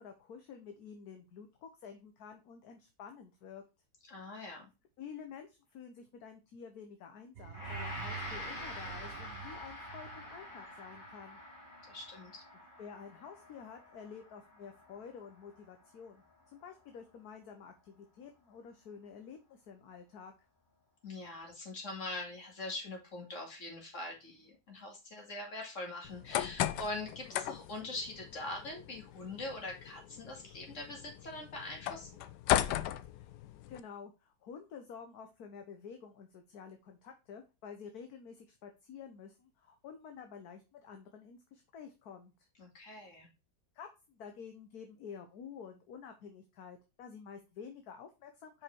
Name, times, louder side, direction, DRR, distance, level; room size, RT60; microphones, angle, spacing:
voice 1, 0.0-3.6 5.0-11.4 12.8-20.3 33.1-33.3 33.7-42.5 43.7-48.6, left 6 dB, 65° left, 5 dB, 1.4 m, -50 dB
voice 2, 4.1-4.7 11.9-12.4 21.0-32.1 42.6-43.3, left 2 dB, 45° left, 1 dB, 2.6 m, -43 dB
sound 1, 7.4-11.3, right 8 dB, 65° right, 0.6 m, -47 dB
Gong, 7.5-16.7, left 1 dB, 30° left, 1.9 m, -47 dB
sound 2, 26.0-33.8, left 12 dB, 85° left, 1.2 m, -37 dB
5.9 x 4.9 x 4.5 m, 0.27 s
omnidirectional pair, 1.8 m